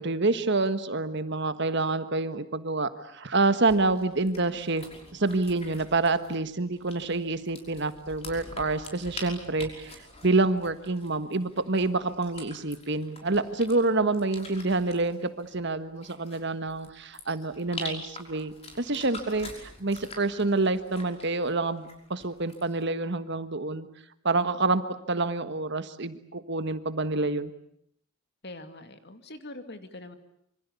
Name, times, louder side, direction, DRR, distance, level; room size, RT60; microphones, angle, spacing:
voice 1, 0.0-4.9 5.1-23.9 24.2-24.8 25.1-27.5, right 3 dB, 55° right, 11 dB, 1.5 m, -27 dB
sound 1, 3.6-22.8, left 2 dB, 30° left, 5.6 m, -46 dB
voice 2, 28.4-30.2, left 2 dB, 50° left, 9 dB, 2.5 m, -43 dB
26.5 x 25.5 x 8.4 m, 0.71 s
head